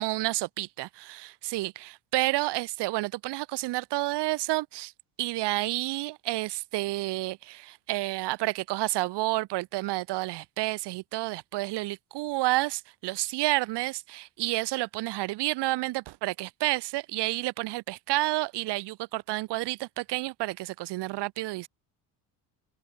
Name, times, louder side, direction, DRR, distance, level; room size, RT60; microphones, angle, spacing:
voice 1, 0.0-4.9 5.2-21.7, right 19 dB, 75° right, 4.6 m, -30 dB
cardioid pair, 130°, 42 cm